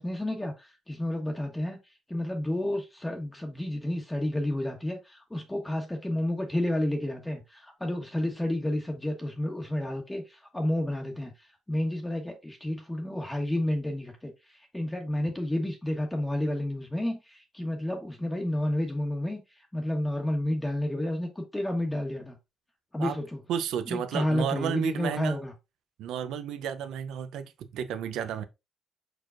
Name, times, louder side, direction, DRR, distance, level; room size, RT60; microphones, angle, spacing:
voice 1, 0.0-1.8 2.1-19.4 19.7-22.4 22.9-23.4 23.9-25.5, left 1 dB, 10° left, 1.1 m, -31 dB
voice 2, 23.5-25.4 26.0-28.4, right 9 dB, 85° right, 0.5 m, -32 dB
4.7 x 4.5 x 2.5 m
cardioid pair, 90°, 0 cm